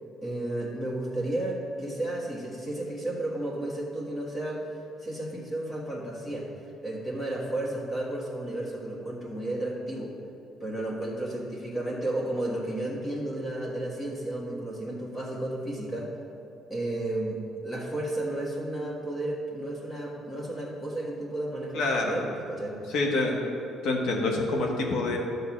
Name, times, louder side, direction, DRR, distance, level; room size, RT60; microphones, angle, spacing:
voice 1, 0.2-4.7 5.0-6.5 6.8-10.1 10.6-16.1 16.7-22.8, right 1 dB, 15° left, -4 dB, 1.6 m, -33 dB
voice 2, 21.7-22.2 22.9-23.4 23.8-25.2, left 2 dB, 75° left, 0 dB, 1.4 m, -26 dB
11.0 x 3.9 x 7.2 m, 2.9 s
cardioid pair, 110°, 0 cm